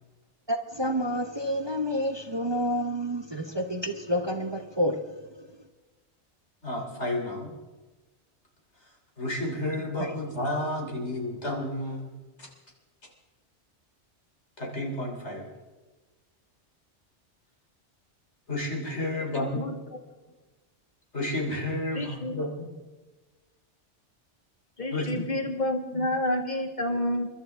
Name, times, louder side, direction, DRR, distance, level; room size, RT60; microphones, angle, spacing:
voice 1, 0.5-5.2 10.0-10.1, equal, 25° right, 0.8 m, -29 dB
voice 2, 6.6-7.5 9.2-12.1 12.4-12.5 14.6-15.5 18.5-19.7 21.1-22.8 24.9-25.3, left 1 dB, 70° left, 3.5 m, -31 dB
voice 3, 21.9-22.5 24.8-27.3, left 1 dB, 40° left, 1.9 m, -29 dB
29.0 x 12.5 x 3.5 m
omnidirectional pair, 1.2 m